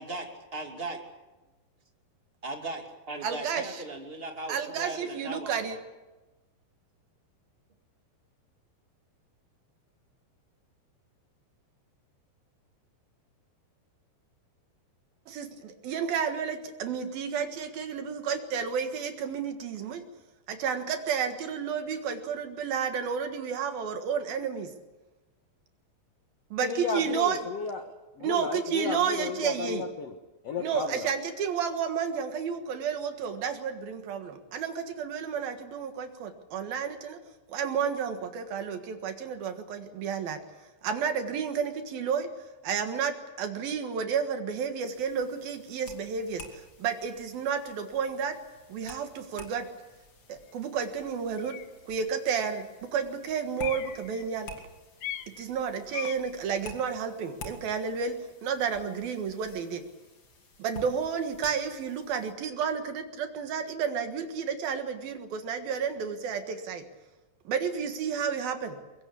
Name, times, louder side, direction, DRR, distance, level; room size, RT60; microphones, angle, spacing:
voice 1, 0.5-1.0 2.4-5.8, right 2 dB, 20° right, 3 dB, 1.8 m, -38 dB
voice 2, 3.2-3.8 4.5-5.8 15.3-20.0 20.5-24.7 26.5-27.4 28.2-29.8 30.6-37.2 37.5-40.4 40.8-42.3 42.6-46.4 46.8-48.4 48.7-49.7 50.3-51.6 51.9-54.5 55.4-59.8 60.6-66.8 67.5-68.8, right 6 dB, 60° right, 7 dB, 3.1 m, -31 dB
voice 3, 26.6-30.1 30.4-31.1, left 4 dB, 85° left, 6 dB, 1.4 m, -34 dB
sound 1, 44.8-62.3, left 2 dB, 35° left, 2.4 m, -51 dB
sound 2, 50.4-50.5 51.4-51.7 52.3-52.8 53.2-54.4 55.0-55.5 55.9-56.4, left 12 dB, 70° left, 2.7 m, -40 dB
22.5 x 22.5 x 8.5 m, 1.1 s
omnidirectional pair, 5.3 m